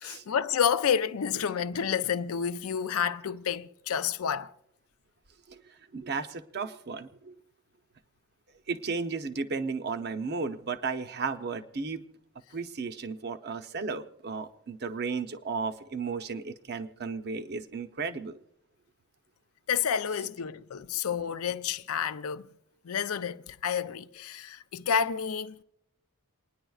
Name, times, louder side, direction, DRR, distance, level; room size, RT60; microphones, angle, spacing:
voice 1, 0.0-4.5 19.7-22.5 22.8-25.6, left 7 dB, 80° left, 0.5 m, -29 dB
voice 2, 5.5-7.3 8.7-12.0 12.5-18.4, right 4 dB, 50° right, 0.7 m, -34 dB
28.5 x 9.9 x 2.4 m
head